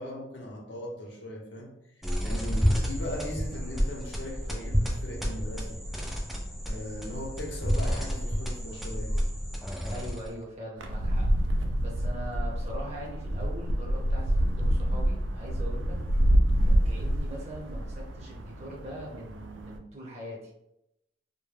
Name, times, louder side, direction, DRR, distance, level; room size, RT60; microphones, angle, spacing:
voice 1, 0.0-1.7 2.2-5.8 6.7-9.2, left 1 dB, 65° left, 0 dB, 0.6 m, -39 dB
sound 1, 2.0-10.4, equal, ahead, 0.3 m, -30 dB
voice 2, 9.8-11.2 11.8-15.9 16.6-20.4, right 1 dB, 35° right, -3 dB, 0.7 m, -41 dB
sound 2, 10.8-19.8, equal, 80° right, 0.3 m, -27 dB
2.2 x 2.1 x 3.2 m, 0.84 s
head